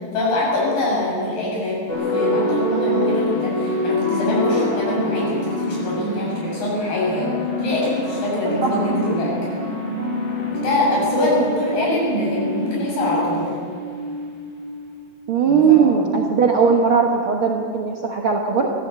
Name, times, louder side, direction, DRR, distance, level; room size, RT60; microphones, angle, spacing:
voice 1, 0.1-7.3 7.6-9.5 10.5-13.5 15.4-15.9, left 1 dB, 55° left, -4 dB, 9.0 m, -23 dB
sound 1, 1.9-15.2, left 1 dB, 40° left, 5.8 m, -26 dB
voice 2, 15.3-18.7, right 6 dB, 75° right, 0 dB, 1.2 m, -18 dB
23.0 x 15.5 x 8.2 m, 2.1 s
omnidirectional pair, 4.7 m